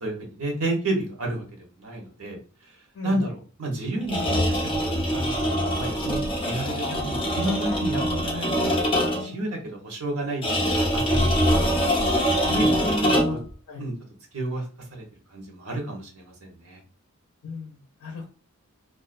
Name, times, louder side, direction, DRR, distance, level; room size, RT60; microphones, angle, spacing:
voice 1, 0.0-4.7 5.1-8.8 9.0-11.8 12.5-13.4 13.8-13.9 14.3-14.6 14.9-15.0 15.3-16.8, right 1 dB, 80° right, 1 dB, 0.9 m, -31 dB
sound 1, 4.0-9.4 10.4-13.5, equal, 25° left, 0.6 m, -24 dB
voice 2, 13.1-13.9 17.4-18.3, left 4 dB, 75° left, 1 dB, 0.5 m, -36 dB
2.4 x 2.1 x 2.4 m, 0.36 s
head